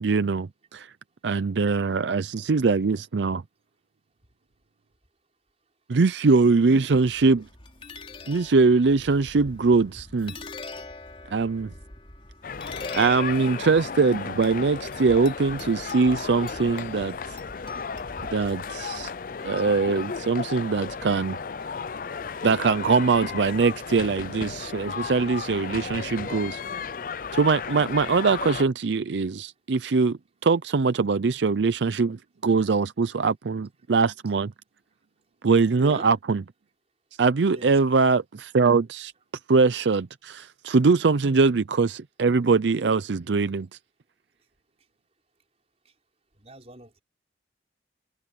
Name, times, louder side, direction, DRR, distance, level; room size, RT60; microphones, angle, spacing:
voice 1, 0.0-0.9 1.2-3.4 5.9-7.5 8.3-10.3 11.3-11.7 12.9-17.4 18.3-19.1 19.4-21.4 22.4-26.6 27.3-34.5 35.4-36.4 37.2-39.1 39.5-43.7, right 4 dB, 80° right, 0.5 m, -22 dB
sound 1, 6.9-19.0, left 3 dB, 30° left, 4.3 m, -43 dB
sound 2, 12.4-28.6, left 5 dB, 50° left, 0.5 m, -34 dB
voice 2, 35.7-36.2 37.5-37.8 46.4-47.0, right 1 dB, 35° right, 5.6 m, -41 dB
head